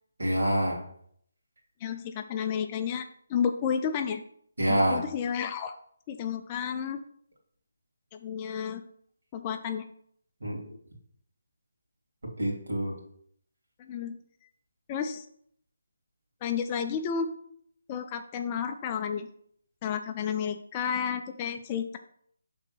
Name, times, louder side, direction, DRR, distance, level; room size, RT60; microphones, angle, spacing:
voice 1, 0.2-0.8 4.6-5.0 10.4-10.7 12.4-13.0, right 1 dB, 65° right, 0 dB, 2.4 m, -26 dB
voice 2, 1.8-4.2 4.7-5.8 6.1-7.0 8.1-8.8 9.3-9.8 13.8-14.2 14.9-15.3 16.4-17.3 17.9-19.3 19.8-22.0, left 7 dB, 20° left, 6 dB, 0.4 m, -31 dB
6.0 x 3.7 x 5.7 m, 0.65 s
figure-of-eight pair, 150°, 0 cm